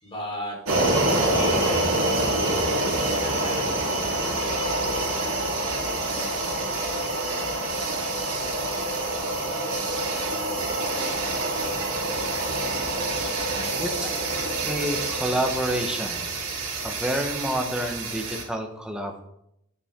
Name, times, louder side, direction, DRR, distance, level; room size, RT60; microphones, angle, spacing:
voice 1, 0.0-2.9 3.1-4.2 13.0-13.7, equal, 25° left, -3 dB, 4.0 m, -38 dB
sound 1, 0.6-18.4, right 2 dB, 70° right, 2.8 m, -26 dB
voice 2, 14.6-16.3 16.8-19.2, equal, 5° right, 2 dB, 1.2 m, -28 dB
11.0 x 8.6 x 3.7 m, 0.80 s
head